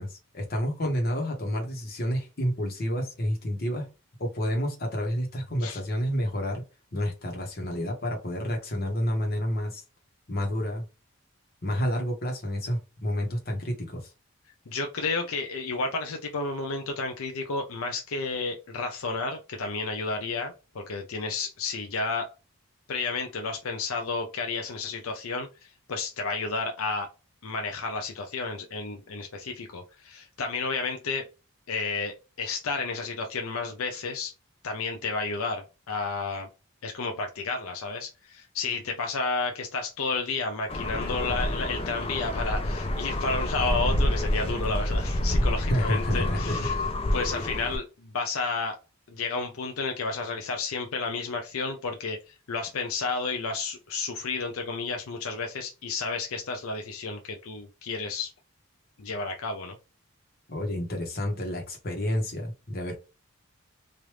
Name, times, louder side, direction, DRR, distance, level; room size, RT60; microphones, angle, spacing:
voice 1, 0.0-3.9 4.2-6.6 6.9-9.8 10.3-10.8 11.6-14.1 45.6-46.6 60.5-62.9, equal, 45° left, 1 dB, 1.1 m, -29 dB
voice 2, 14.7-22.3 22.9-27.1 27.4-31.3 31.7-34.3 34.6-36.5 36.8-46.7 47.1-48.8 49.1-52.2 52.5-58.3 59.0-59.8, left 4 dB, 75° left, 4 dB, 0.6 m, -31 dB
sound 1, 40.7-47.8, left 1 dB, 25° left, 0.5 m, -28 dB
3.3 x 2.6 x 3.0 m, 0.29 s
head